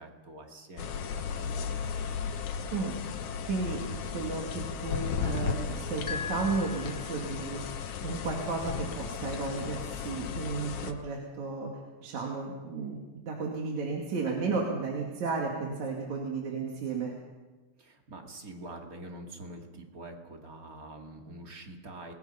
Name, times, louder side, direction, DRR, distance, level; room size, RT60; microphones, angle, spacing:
voice 1, 0.0-1.8 17.8-22.1, right 1 dB, 30° right, 2 dB, 2.5 m, -46 dB
sound 1, 0.8-10.9, left 6 dB, 70° left, 2.6 m, -35 dB
voice 2, 3.5-3.8 4.1-4.4 4.8-7.7 8.0-11.7 12.0-13.0 13.2-17.1, right 4 dB, 65° right, -1 dB, 3.6 m, -33 dB
sound 2, 6.1-7.6, left 5 dB, 20° left, 3.4 m, -40 dB
27.5 x 20.5 x 5.7 m, 1.3 s
omnidirectional pair, 3.6 m